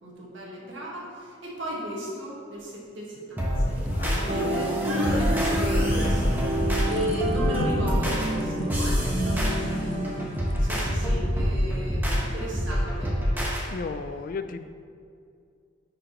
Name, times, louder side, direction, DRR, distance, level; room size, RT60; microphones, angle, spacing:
voice 1, 0.0-3.9 4.3-6.5 6.8-10.0 10.6-13.2, equal, 70° right, -4 dB, 1.7 m, -34 dB
sound 1, 3.1-13.2, left 2 dB, 85° left, 0.6 m, -39 dB
sound 2, 3.4-13.6, equal, 10° right, 1.0 m, -26 dB
voice 2, 3.9-4.4 13.7-14.6, left 4 dB, 45° left, 10 dB, 0.3 m, -35 dB
sound 3, 4.3-10.3, right 1 dB, 45° right, 0.8 m, -30 dB
10.0 x 4.9 x 3.1 m, 2.3 s
head